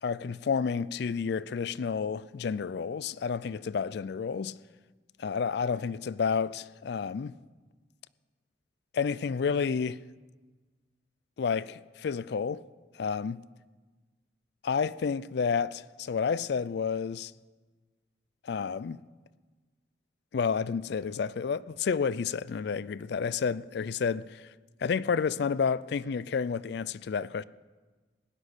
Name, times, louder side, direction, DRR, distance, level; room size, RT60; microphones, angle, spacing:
voice 1, 0.0-4.5 5.2-7.3 8.9-10.0 11.4-12.6 12.9-13.4 14.6-17.3 18.4-19.0 20.3-24.5 24.8-27.4, left 6 dB, 55° left, 0.3 m, -30 dB
17.0 x 6.4 x 10.0 m
head